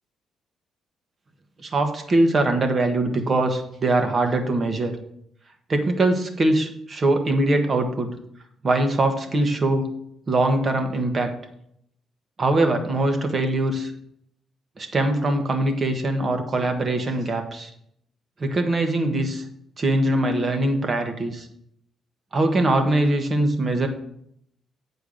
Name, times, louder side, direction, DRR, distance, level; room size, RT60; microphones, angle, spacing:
voice 1, 1.6-4.9 5.7-8.1 8.6-9.9 10.3-11.3 12.4-13.9 14.8-17.7 18.4-19.4 19.8-21.5 22.3-23.9, right 2 dB, 40° right, 5 dB, 1.4 m, -22 dB
8.5 x 4.6 x 6.6 m, 0.73 s
cardioid pair, 90°, 0 cm